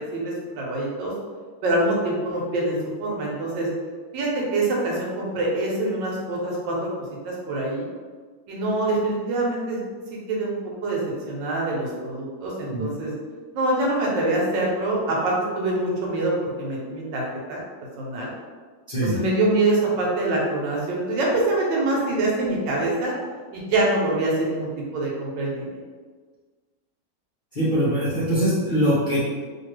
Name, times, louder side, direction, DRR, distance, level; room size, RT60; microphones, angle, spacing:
voice 1, 0.1-1.1 1.6-3.7 4.1-6.9 7.2-7.8 8.5-9.8 10.3-10.5 10.8-11.0 11.3-13.1 13.5-17.2 17.5-17.6 18.0-18.3 19.0-23.2 23.5-25.7, right 2 dB, 80° right, -3 dB, 1.5 m, -25 dB
voice 2, 18.9-19.2 27.5-29.2, equal, 65° left, -10 dB, 0.5 m, -22 dB
2.9 x 2.8 x 3.1 m, 1.5 s
omnidirectional pair, 2.0 m